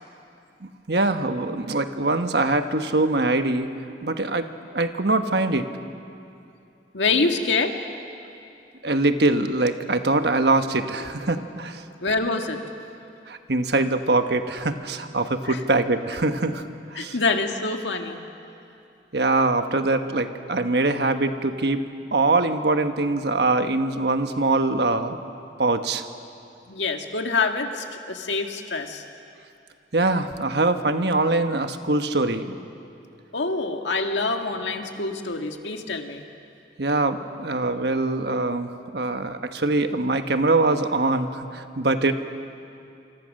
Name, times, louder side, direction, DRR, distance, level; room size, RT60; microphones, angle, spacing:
voice 1, 0.6-3.7 4.0-5.7 8.8-11.8 13.3-17.1 19.1-21.8 22.1-25.2 25.6-26.0 29.9-32.6 36.8-42.1, right 2 dB, 65° right, 8 dB, 1.3 m, -23 dB
voice 2, 6.9-7.8 12.0-12.6 15.5-15.6 17.0-18.2 26.7-29.0 33.3-36.2, left 3 dB, 90° left, 4 dB, 1.9 m, -26 dB
27.0 x 25.5 x 6.5 m, 2.6 s
head